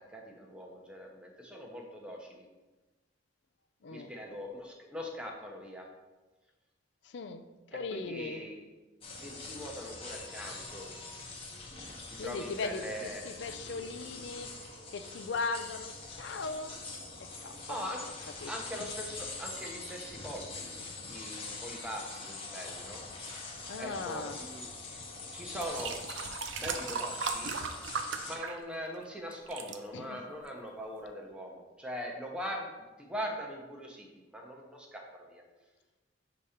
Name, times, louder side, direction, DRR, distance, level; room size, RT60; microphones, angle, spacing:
voice 1, 0.1-2.4 3.9-5.9 7.7-8.6 9.2-10.9 12.1-13.2 17.7-18.0 18.5-20.7 21.1-23.0 23.8-24.7 25.3-25.9 26.3-27.5 28.2-32.7 33.0-35.4, equal, 5° right, 0 dB, 0.7 m, -41 dB
voice 2, 7.0-7.4 7.7-8.4 12.2-14.5 14.9-16.8 17.2-17.9 18.4-18.5 20.8-21.0 23.7-24.4 29.9-30.2, left 4 dB, 65° left, 10 dB, 0.4 m, -38 dB
sound 1, 9.0-28.4, left 3 dB, 30° left, 0.8 m, -44 dB
sound 2, 24.9-25.0 25.5-29.0 29.3-29.8 30.5-30.6, right 5 dB, 70° right, 0.4 m, -37 dB
6.7 x 2.9 x 4.9 m, 1.2 s
head